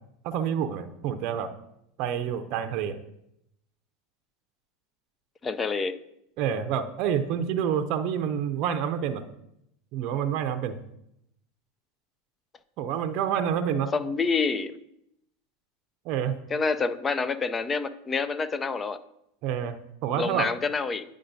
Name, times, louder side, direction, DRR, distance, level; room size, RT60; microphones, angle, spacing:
voice 1, 0.2-1.5 2.0-3.0 6.4-9.2 9.9-10.8 12.8-13.9 16.0-16.4 19.4-20.5, right 8 dB, 55° right, 8 dB, 0.6 m, -28 dB
voice 2, 5.4-5.9 13.9-14.8 16.5-19.0 20.2-21.0, left 4 dB, 25° left, 14 dB, 0.5 m, -27 dB
9.9 x 5.1 x 2.7 m, 0.79 s
hypercardioid pair, 100°, 0 cm